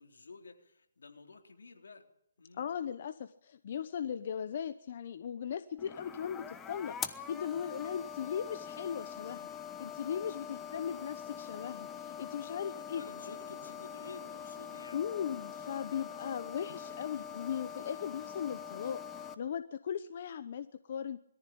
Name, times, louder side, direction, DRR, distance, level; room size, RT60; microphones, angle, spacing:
voice 1, 0.0-2.1 2.4-2.7 12.9-15.0, left 4 dB, 85° left, 4 dB, 3.8 m, -51 dB
voice 2, 2.6-13.0 14.9-21.2, left 8 dB, 50° left, 11 dB, 0.9 m, -38 dB
sound 1, 5.8-19.3, left 8 dB, 10° left, 1.1 m, -44 dB
22.0 x 14.5 x 8.8 m, 0.76 s
hypercardioid pair, 155°, 0 cm